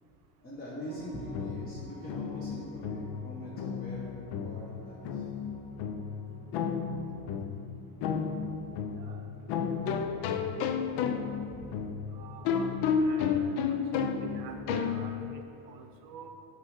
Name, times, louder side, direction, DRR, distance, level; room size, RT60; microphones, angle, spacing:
voice 1, 0.4-5.3 11.5-11.8, equal, 20° left, -6 dB, 0.9 m, -43 dB
sound 1, 0.9-7.4, right 3 dB, ahead, 1.8 m, -53 dB
sound 2, 1.1-15.4, left 6 dB, 55° left, 0.6 m, -32 dB
voice 2, 8.9-9.4 12.1-12.7 13.0-13.6 13.9-16.3, right 6 dB, 45° right, 5 dB, 0.8 m, -49 dB
9.7 x 3.3 x 6.3 m, 2.8 s
cardioid pair, 165°, 48 cm